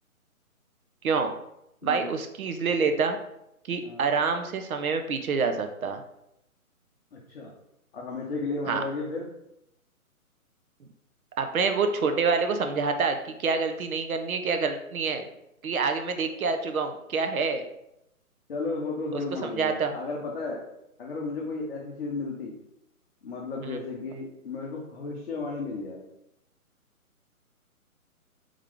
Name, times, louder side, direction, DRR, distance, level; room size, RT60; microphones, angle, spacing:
voice 1, 1.8-3.2 3.7-6.0 8.7-8.8 11.4-15.3 15.6-17.6 19.1-20.0 23.6-23.8, right 5 dB, 70° right, 6 dB, 0.7 m, -27 dB
voice 2, 7.1-7.5 7.9-9.3 18.5-20.6 21.0-22.5 23.2-26.0, left 3 dB, 45° left, -3 dB, 0.8 m, -34 dB
3.7 x 3.6 x 3.3 m, 0.82 s
hypercardioid pair, 165°, 44 cm